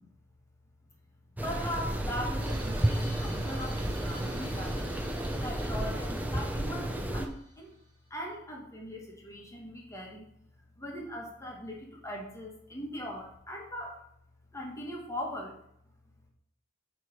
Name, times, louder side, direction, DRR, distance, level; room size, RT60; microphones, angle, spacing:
voice 1, 1.4-5.0 5.3-7.7 8.1-10.3 10.8-14.0 14.5-15.6, equal, 15° left, 0 dB, 1.2 m, -40 dB
sound 1, 1.4-7.3, right 1 dB, 10° right, 0.6 m, -32 dB
sound 2, 2.4-7.9, right 1 dB, 30° right, 2.1 m, -50 dB
8.1 x 3.1 x 5.1 m, 0.71 s
head